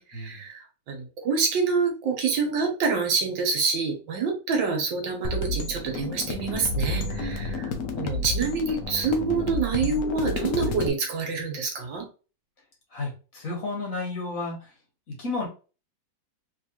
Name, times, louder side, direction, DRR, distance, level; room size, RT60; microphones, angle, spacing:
voice 1, 0.0-7.7 8.0-12.1, right 4 dB, 75° right, 3 dB, 1.7 m, -27 dB
sound 1, 5.2-10.9, left 2 dB, 65° left, 1.0 m, -30 dB
voice 2, 12.9-14.7 15.2-15.5, left 3 dB, 50° left, -1 dB, 1.6 m, -32 dB
3.4 x 3.2 x 2.9 m, 0.33 s
omnidirectional pair, 2.0 m